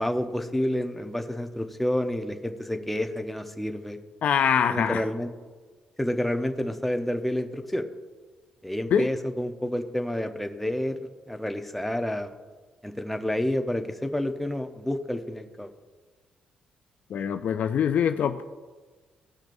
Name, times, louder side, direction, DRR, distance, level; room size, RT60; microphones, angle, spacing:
voice 1, 0.0-4.0 4.7-5.3 6.0-7.9 8.6-11.0 11.3-12.3 12.8-15.7, left 1 dB, 5° left, 0.8 m, -29 dB
voice 2, 4.2-5.0 8.9-9.1 17.1-18.4, left 8 dB, 65° left, 0.4 m, -24 dB
17.0 x 6.0 x 2.6 m
cardioid pair, 80°, 3 cm